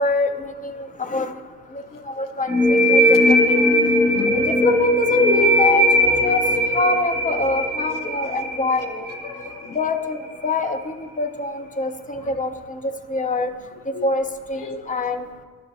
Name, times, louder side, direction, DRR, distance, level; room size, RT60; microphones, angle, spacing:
voice 1, 0.0-1.3 1.7-3.6 4.5-6.4 6.7-9.1 9.7-13.5 14.0-15.3, left 2 dB, 25° left, 7 dB, 0.4 m, -24 dB
sound 1, 2.5-9.9, equal, 5° right, 1.3 m, -19 dB
voice 2, 4.1-4.5 8.7-9.8 12.2-12.3 13.9-14.1 14.6-14.8, left 5 dB, 60° left, 5 dB, 0.8 m, -35 dB
9.6 x 5.4 x 4.0 m, 1.5 s
wide cardioid pair, 165°, 36 cm